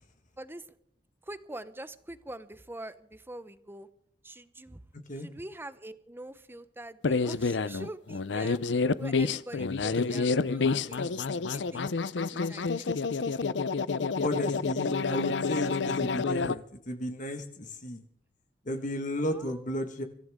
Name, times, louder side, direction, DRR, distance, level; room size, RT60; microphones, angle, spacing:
voice 1, 0.4-0.8 1.2-3.9 4.2-4.8 5.1-8.6 9.0-11.1 11.5-11.9 12.1-12.8 19.3-19.7, right 1 dB, 10° right, 13 dB, 0.9 m, -44 dB
sound 1, 7.0-16.6, left 4 dB, 75° left, 0.6 m, -28 dB
voice 2, 14.2-18.0 18.6-20.0, equal, 45° left, 6 dB, 1.6 m, -33 dB
24.5 x 14.5 x 3.6 m, 0.69 s
head